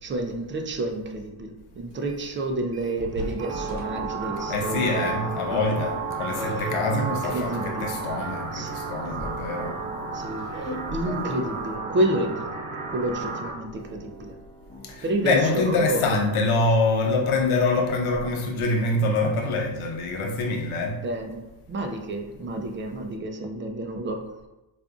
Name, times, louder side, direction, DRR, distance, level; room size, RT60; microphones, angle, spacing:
voice 1, 0.0-5.1 5.5-5.6 6.3-8.0 8.5-8.8 10.1-14.3 15.0-16.6 20.9-21.4 21.7-24.3, right 1 dB, 25° right, 4 dB, 0.4 m, -30 dB
sound 1, 1.9-2.4 2.7-11.2, equal, 45° right, 1.0 m, -43 dB
sound 2, 3.4-13.5, right 4 dB, 80° right, 0.9 m, -33 dB
voice 2, 4.5-9.8 14.8-21.0, left 3 dB, 75° left, 2 dB, 0.8 m, -25 dB
sound 3, 10.6-18.7, right 1 dB, 20° left, 0.7 m, -44 dB
4.9 x 2.5 x 2.3 m, 0.98 s
cardioid pair, 115°, 50 cm